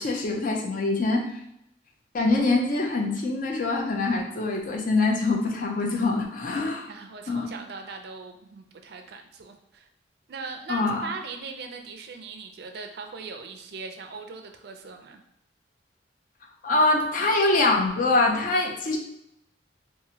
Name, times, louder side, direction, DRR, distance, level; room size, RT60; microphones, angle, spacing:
voice 1, 0.0-1.4 2.1-6.9 7.3-7.5 10.7-11.0 16.6-19.0, left 2 dB, 45° left, 1 dB, 0.5 m, -24 dB
voice 2, 6.9-9.9 10.3-15.2, right 4 dB, 60° right, 5 dB, 0.4 m, -40 dB
2.9 x 2.5 x 2.7 m, 0.79 s
head